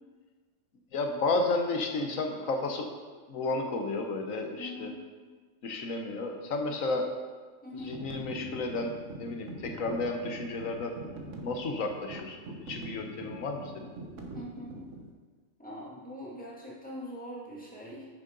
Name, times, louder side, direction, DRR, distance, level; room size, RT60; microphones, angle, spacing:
voice 1, 0.9-2.9 3.3-4.9 5.6-7.1 7.8-11.0 11.4-13.9, left 3 dB, 85° left, 4 dB, 1.4 m, -32 dB
voice 2, 4.6-5.0 7.6-8.0 14.3-14.9 15.6-18.1, equal, 5° left, -6 dB, 2.1 m, -42 dB
sound 1, 7.8-15.1, right 2 dB, 70° right, 1.4 m, -44 dB
10.0 x 6.4 x 3.9 m, 1.4 s
omnidirectional pair, 1.4 m